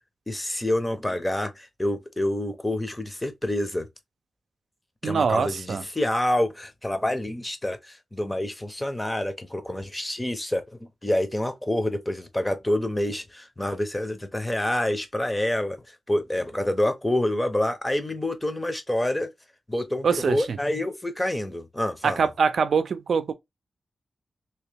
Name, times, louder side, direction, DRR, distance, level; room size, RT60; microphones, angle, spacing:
voice 1, 0.3-3.9 5.0-10.6 11.0-15.8 16.1-19.3 19.7-22.2, left 1 dB, 15° left, 0.7 m, -27 dB
voice 2, 5.0-5.8 20.0-20.6 22.0-23.3, right 5 dB, 70° right, 0.5 m, -24 dB
2.9 x 2.9 x 3.4 m
wide cardioid pair, 95°, 0 cm